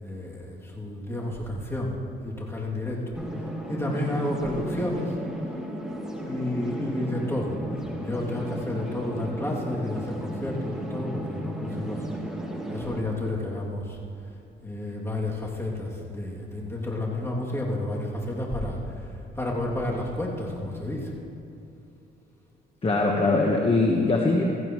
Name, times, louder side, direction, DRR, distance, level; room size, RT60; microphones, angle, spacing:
voice 1, 0.0-1.9 2.2-3.0 3.7-5.1 6.1-7.6 8.0-12.0 12.7-14.0 14.6-19.1 19.4-21.1, left 1 dB, 10° left, -4 dB, 2.7 m, -31 dB
sound 1, 3.1-13.0, right 1 dB, 5° right, 1.8 m, -34 dB
voice 2, 22.8-24.4, left 3 dB, 30° left, 0 dB, 1.3 m, -22 dB
16.0 x 14.5 x 3.2 m, 2.8 s
cardioid pair, 90°, 20 cm